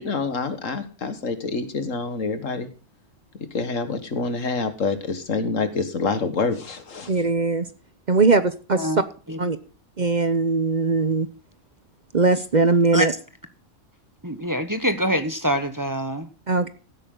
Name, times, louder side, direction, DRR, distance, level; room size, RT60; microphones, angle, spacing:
voice 1, 0.0-2.7 3.5-7.1, left 4 dB, 80° left, 2.0 m, -27 dB
voice 2, 7.1-7.7 8.1-9.0 9.4-9.6 10.0-11.3 12.1-13.1 16.5-16.7, right 3 dB, 40° right, 0.9 m, -20 dB
voice 3, 14.2-16.3, equal, 15° right, 1.1 m, -24 dB
16.0 x 9.0 x 3.8 m
omnidirectional pair, 1.3 m